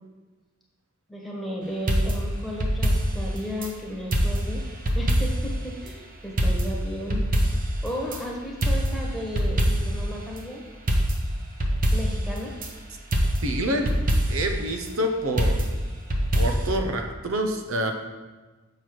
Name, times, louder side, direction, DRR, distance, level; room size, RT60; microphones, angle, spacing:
voice 1, 1.1-4.6 4.9-7.3 7.8-10.6 11.9-12.5, equal, ahead, -3 dB, 1.3 m, -34 dB
sound 1, 1.9-3.7 4.1-5.6 5.9-6.0 6.4-8.2 8.6-10.1 10.4-10.5 10.9-12.7 13.1-14.6 15.4-16.7, equal, 45° right, 0.9 m, -24 dB
voice 2, 13.4-14.0 14.3-15.7 16.3-17.9, right 1 dB, 80° right, 4 dB, 0.8 m, -27 dB
6.7 x 5.9 x 4.7 m, 1.3 s
head